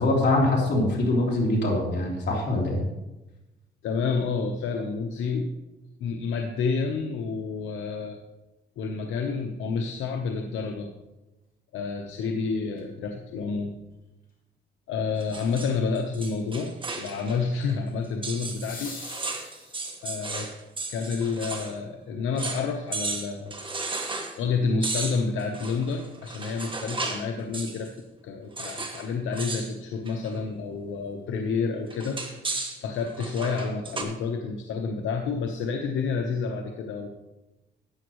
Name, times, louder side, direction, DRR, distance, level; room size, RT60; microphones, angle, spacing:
voice 1, 0.0-2.8, left 2 dB, 60° left, -2 dB, 3.6 m, -23 dB
voice 2, 3.8-5.5 6.0-8.2 8.8-10.9 11.7-13.7 14.9-19.3 20.0-20.5 20.9-23.6 24.4-27.9 28.2-37.1, left 5 dB, 85° left, 3 dB, 1.0 m, -29 dB
sound 1, 12.7-12.8 18.4-20.2 22.4-22.5, left 4 dB, 45° left, 2.8 m, -43 dB
sound 2, 15.2-17.4 17.7-17.8 18.2-21.8 22.0-22.1 22.4-22.7 22.9-24.4 24.8-27.3 27.5-27.9 28.6-29.1 29.3-29.7 30.1-30.4 31.9-34.0, right 3 dB, 25° right, 1.7 m, -34 dB
12.5 x 9.1 x 3.1 m, 1.0 s
cardioid pair, 90°, 20 cm